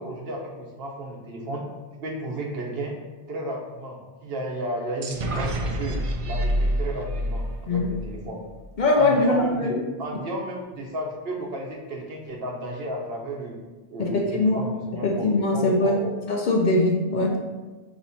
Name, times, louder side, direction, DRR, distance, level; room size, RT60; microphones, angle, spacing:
voice 1, 0.0-1.6 2.0-3.0 3.3-8.4 9.0-13.6 13.9-16.2, right 1 dB, 70° right, 0 dB, 1.0 m, -33 dB
sound 1, 5.0-8.7, right 2 dB, 50° right, 0.4 m, -33 dB
sound 2, 5.8-8.8, equal, 85° left, 1.0 m, -28 dB
voice 2, 8.8-9.8 14.0-14.6 15.0-16.0 16.3-17.4, left 2 dB, 55° left, 0 dB, 0.7 m, -21 dB
4.3 x 3.0 x 4.0 m, 1.2 s
omnidirectional pair, 1.1 m